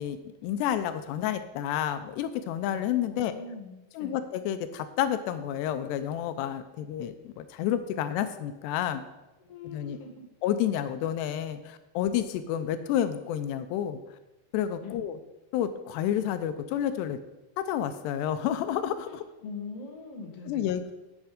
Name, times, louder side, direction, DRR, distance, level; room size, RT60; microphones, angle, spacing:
voice 1, 0.0-3.3 3.9-9.0 9.6-10.0 10.4-14.0 14.5-15.2 15.5-17.2 17.6-19.2 20.5-20.9, left 10 dB, 85° left, 10 dB, 2.8 m, -30 dB
voice 2, 3.1-4.2 9.4-10.2 14.8-15.0 19.1-20.7, left 4 dB, 45° left, 0 dB, 2.3 m, -42 dB
12.0 x 8.3 x 5.0 m, 1.0 s
omnidirectional pair, 4.8 m